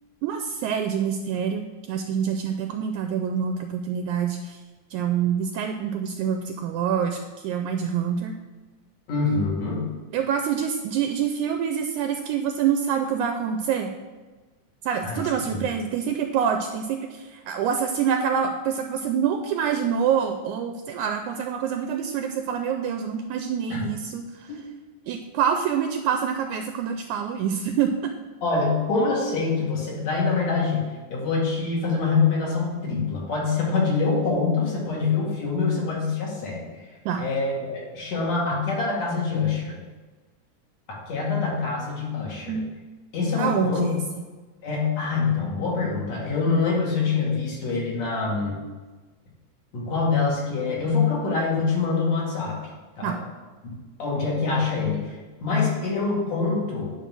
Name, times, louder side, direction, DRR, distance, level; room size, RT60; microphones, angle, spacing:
voice 1, 0.2-4.6 4.9-8.3 10.1-13.9 14.8-24.5 25.1-28.1 37.1-37.3 42.5-42.6 43.4-43.9 53.0-53.2, right 7 dB, 80° right, 6 dB, 1.8 m, -26 dB
voice 2, 9.1-9.9 15.0-15.6 23.7-23.8 28.4-30.8 31.1-36.9 37.2-39.8 40.9-42.6 43.1-43.9 44.6-48.6 49.7-52.6 53.0-53.2 54.0-56.9, left 4 dB, 60° left, -4 dB, 3.2 m, -25 dB
10.0 x 3.9 x 6.1 m, 1.3 s
omnidirectional pair, 3.7 m